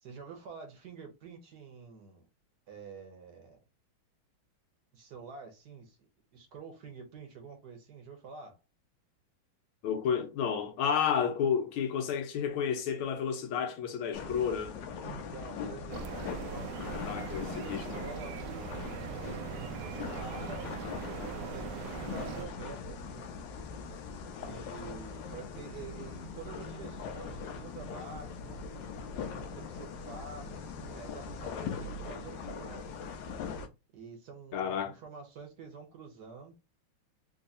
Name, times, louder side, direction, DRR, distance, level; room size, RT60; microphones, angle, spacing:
voice 1, 0.0-2.2 2.7-3.6 4.9-8.6 15.0-23.3 24.4-28.6 29.3-33.1 33.9-36.5, right 5 dB, 60° right, 1.3 m, -48 dB
voice 2, 9.8-14.8 16.9-17.8 34.5-34.9, left 7 dB, 85° left, 1.6 m, -31 dB
sound 1, 14.1-33.7, left 5 dB, 70° left, 1.2 m, -41 dB
sound 2, 15.9-22.5, right 6 dB, 75° right, 0.9 m, -41 dB
4.0 x 2.7 x 2.6 m
omnidirectional pair, 2.3 m